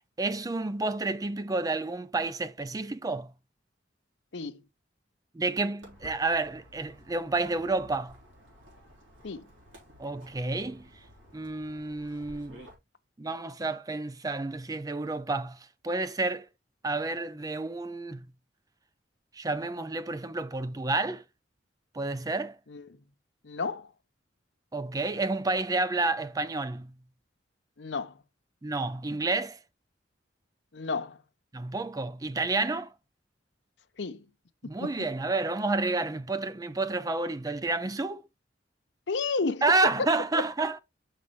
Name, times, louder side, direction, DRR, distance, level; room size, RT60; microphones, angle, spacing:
voice 1, 0.2-3.3 5.3-8.2 10.0-10.9 11.3-12.6 13.2-16.5 16.8-18.3 19.3-21.2 21.9-22.6 24.7-26.9 28.6-29.6 31.5-32.9 34.6-38.2 39.6-40.8, right 3 dB, 20° right, 0.4 m, -30 dB
Walk footsteps, 5.8-12.7, equal, 85° right, 3.7 m, -53 dB
voice 2, 23.4-23.9 27.8-28.2 30.7-31.2 34.0-34.3 34.8-34.9 39.1-39.6 40.0-40.1, left 4 dB, 65° left, 0.7 m, -32 dB
6.3 x 5.5 x 3.1 m
head